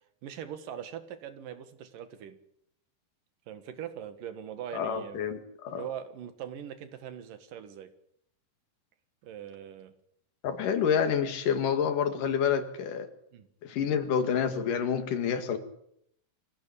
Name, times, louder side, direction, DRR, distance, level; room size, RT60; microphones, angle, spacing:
voice 1, 0.2-2.4 3.5-5.2 5.7-7.9 9.2-9.9 13.3-13.5, right 9 dB, 85° right, 10 dB, 3.3 m, -41 dB
voice 2, 4.7-5.8 10.4-13.1 13.6-15.6, left 7 dB, 75° left, 8 dB, 3.5 m, -28 dB
24.5 x 16.0 x 8.7 m, 0.74 s
omnidirectional pair, 3.7 m